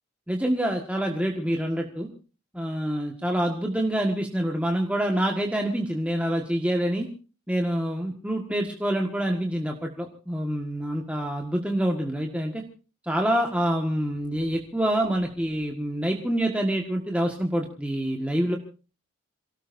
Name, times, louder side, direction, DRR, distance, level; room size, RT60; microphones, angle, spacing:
voice 1, 0.3-2.1 2.5-7.1 7.5-12.6 13.0-18.6, right 1 dB, 5° right, 1 dB, 1.6 m, -26 dB
28.0 x 18.0 x 2.7 m, 0.36 s
head